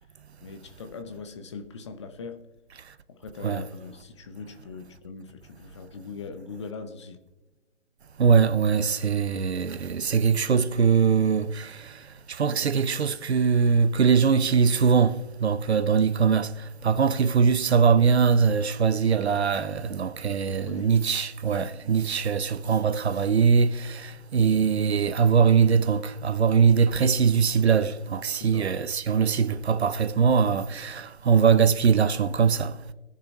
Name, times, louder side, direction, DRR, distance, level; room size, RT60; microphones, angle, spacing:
voice 1, 0.4-2.5 3.1-7.2 20.5-21.0 22.6-22.8 28.4-28.7, left 4 dB, 25° left, 0.7 m, -41 dB
voice 2, 8.2-32.8, right 6 dB, 60° right, 0.8 m, -22 dB
18.5 x 6.8 x 2.8 m
figure-of-eight pair, 140°, 37 cm